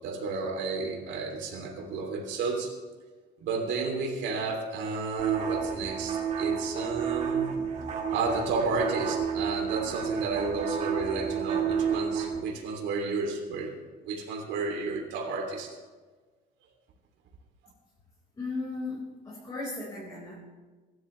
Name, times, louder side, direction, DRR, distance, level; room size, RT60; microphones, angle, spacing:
voice 1, 0.0-2.7 3.4-7.5 8.1-13.7 14.0-15.8, right 4 dB, 75° right, 2 dB, 3.1 m, -32 dB
sound 1, 5.2-12.4, right 7 dB, 40° right, 2.0 m, -31 dB
voice 2, 18.3-20.3, left 3 dB, 20° left, -8 dB, 5.3 m, -36 dB
23.5 x 12.5 x 3.4 m, 1.4 s
cardioid pair, 165°, 18 cm